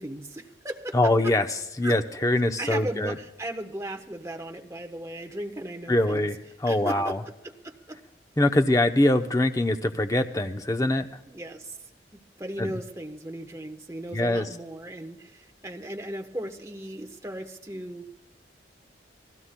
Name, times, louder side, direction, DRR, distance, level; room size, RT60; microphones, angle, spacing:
voice 1, 0.0-1.0 1.8-1.9 2.6-6.3 6.7-7.2 7.4-8.0 11.3-11.8 12.1-18.1, right 1 dB, 15° right, 3 dB, 1.0 m, -36 dB
voice 2, 0.9-3.1 5.9-7.2 8.4-11.1 12.6-12.7 14.1-14.5, left 1 dB, 20° left, 6 dB, 0.7 m, -23 dB
29.0 x 19.0 x 2.2 m, 0.97 s
head